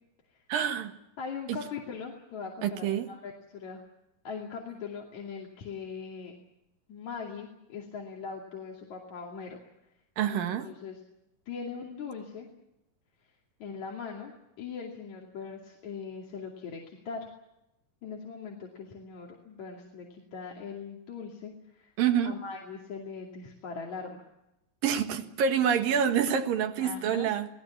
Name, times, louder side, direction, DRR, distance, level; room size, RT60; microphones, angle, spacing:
voice 1, 0.5-0.9 1.5-1.6 2.6-3.1 10.2-10.7 22.0-22.4 24.8-27.5, right 8 dB, 90° right, 7 dB, 3.4 m, -27 dB
voice 2, 1.2-3.8 4.2-6.3 6.9-9.6 10.3-11.0 11.5-12.5 13.6-17.3 18.0-21.9 22.2-24.3 26.8-27.3, left 5 dB, 60° left, -1 dB, 3.8 m, -40 dB
28.0 x 19.0 x 7.4 m, 0.87 s
omnidirectional pair, 3.9 m